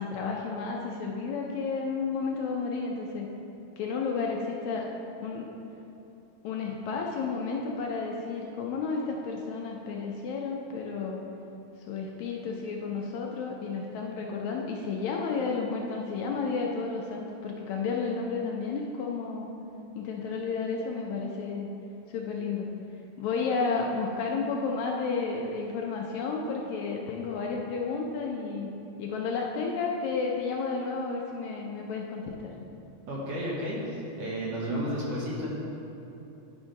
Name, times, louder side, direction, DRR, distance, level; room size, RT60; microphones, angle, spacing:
voice 1, 0.0-3.3 3.8-4.9 5.2-5.5 6.4-11.2 11.9-19.5 20.0-21.7 22.1-22.7 23.2-28.7 29.0-32.5, left 4 dB, 80° left, 0 dB, 1.8 m, -32 dB
voice 2, 33.1-35.5, equal, 60° right, -5 dB, 1.8 m, -32 dB
10.5 x 3.6 x 5.2 m, 2.9 s
omnidirectional pair, 3.6 m